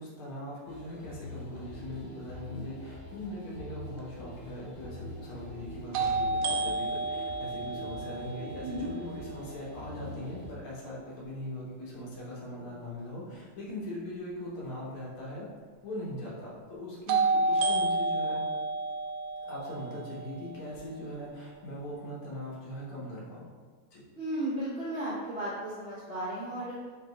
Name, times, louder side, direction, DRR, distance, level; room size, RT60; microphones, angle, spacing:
voice 1, 0.0-15.5 15.8-17.2 17.5-18.4 19.5-23.5 23.9-24.0, left 1 dB, 85° left, -5 dB, 2.1 m, -40 dB
sound 1, 0.7-10.5, left 1 dB, 25° left, 0.5 m, -45 dB
sound 2, 4.0-4.1 5.9-9.8 17.1-21.1, right 2 dB, 75° right, 1.2 m, -31 dB
voice 2, 24.2-26.8, right 1 dB, 45° right, -9 dB, 0.8 m, -34 dB
5.0 x 3.1 x 3.4 m, 1.5 s
omnidirectional pair, 2.3 m